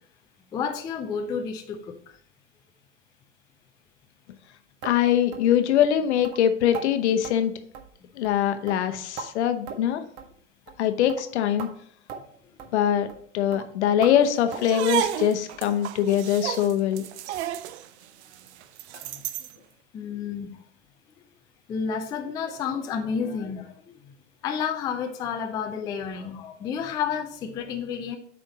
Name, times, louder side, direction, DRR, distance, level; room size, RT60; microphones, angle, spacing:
voice 1, 0.5-2.0 12.2-12.3 12.8-12.9 18.9-19.2 19.9-20.6 21.7-23.8 24.4-28.2, left 6 dB, 10° left, 4 dB, 0.3 m, -30 dB
voice 2, 4.8-7.5 8.2-10.0 10.8-11.7 12.7-13.1 13.3-17.0, left 10 dB, 60° left, 9 dB, 0.9 m, -23 dB
sound 1, 4.8-5.0 5.3-5.5 5.8-5.9 6.2-6.4 6.7-6.9 7.2-7.4 7.7-8.0 8.2-8.4 8.7-9.3 9.7-9.9 10.2-10.3 10.7-10.8 11.1-11.3 11.6-11.7 12.1-12.2 12.6-12.7 13.1-13.2 13.5-13.7 14.0-14.2 14.5-14.7 15.0-15.2 15.5-15.7 16.0-16.1 16.5-16.6 17.0-17.1, right 6 dB, 40° right, 0.9 m, -39 dB
sound 2, 14.5-19.6, right 12 dB, 60° right, 0.6 m, -32 dB
8.5 x 3.5 x 4.1 m, 0.63 s
hypercardioid pair, 95°, 38 cm